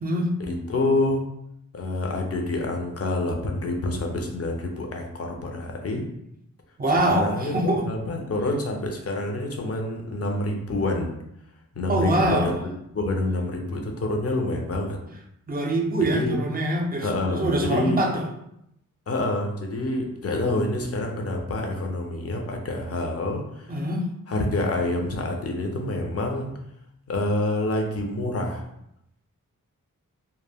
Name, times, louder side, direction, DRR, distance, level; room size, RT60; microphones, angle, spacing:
voice 1, 0.5-1.2 1.7-6.1 7.1-11.1 11.8-12.6 12.9-15.0 16.1-16.4 17.0-18.1 19.1-23.7 24.3-26.5 27.1-28.6, left 2 dB, 45° left, 2 dB, 0.6 m, -27 dB
voice 2, 6.8-7.8 11.9-12.6 15.5-18.2 23.7-24.1, right 1 dB, 25° right, 2 dB, 0.5 m, -24 dB
2.2 x 2.0 x 3.4 m, 0.78 s
cardioid pair, 55°, 34 cm